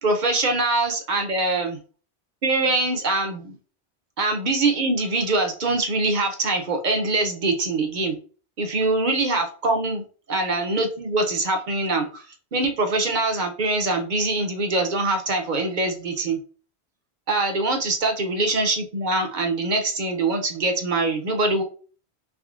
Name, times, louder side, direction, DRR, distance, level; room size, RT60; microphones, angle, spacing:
voice 1, 0.0-1.8 2.4-3.6 4.2-8.2 8.6-10.0 10.3-12.2 12.5-16.4 17.3-21.6, right 2 dB, 50° right, 5 dB, 0.7 m, -23 dB
3.6 x 3.1 x 2.4 m, 0.39 s
omnidirectional pair, 1.1 m